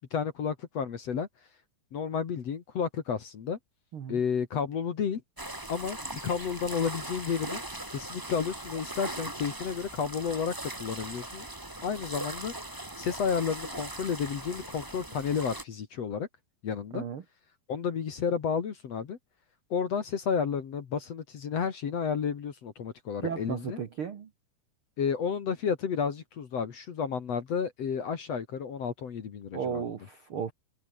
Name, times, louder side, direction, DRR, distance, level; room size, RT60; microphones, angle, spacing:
voice 1, 0.1-1.3 1.9-3.6 4.1-5.2 5.7-7.6 7.9-10.5 10.8-11.5 11.8-12.5 13.0-16.3 16.6-17.0 17.7-19.2 19.7-23.8 25.0-29.8, left 6 dB, 50° left, 2.4 m, -31 dB
sound 1, 5.4-15.6, right 1 dB, 20° right, 0.5 m, -40 dB
voice 2, 23.2-24.3 29.5-30.5, right 7 dB, 60° right, 1.4 m, -34 dB
omnidirectional pair, 4.7 m